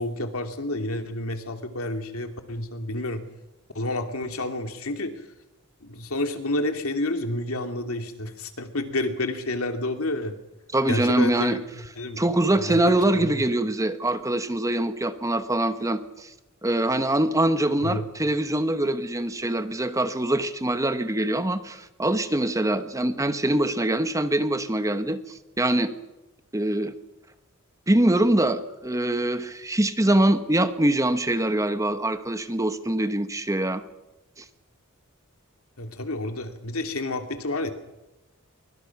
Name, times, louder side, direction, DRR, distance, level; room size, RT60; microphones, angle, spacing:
voice 1, 0.0-3.2 3.7-5.2 5.8-10.4 10.9-11.6 12.0-12.2 12.5-12.8 13.1-13.4 17.8-18.0 35.8-37.7, left 1 dB, 70° left, 6 dB, 2.6 m, -29 dB
voice 2, 10.7-11.6 12.2-16.3 16.6-25.9 26.5-26.9 27.9-33.8 34.4-34.5, right 1 dB, 15° right, 10 dB, 1.1 m, -24 dB
25.5 x 23.5 x 6.0 m, 0.98 s
head